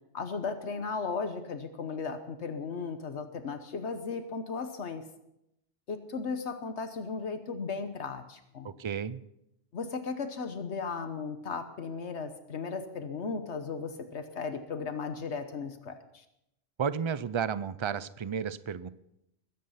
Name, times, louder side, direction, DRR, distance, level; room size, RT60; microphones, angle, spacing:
voice 1, 0.1-5.0 5.9-8.7 9.7-16.2, left 5 dB, 80° left, 8 dB, 1.4 m, -36 dB
voice 2, 8.6-9.2 16.8-18.9, right 7 dB, 40° right, 16 dB, 0.4 m, -32 dB
21.0 x 9.3 x 5.7 m, 0.83 s
omnidirectional pair, 1.1 m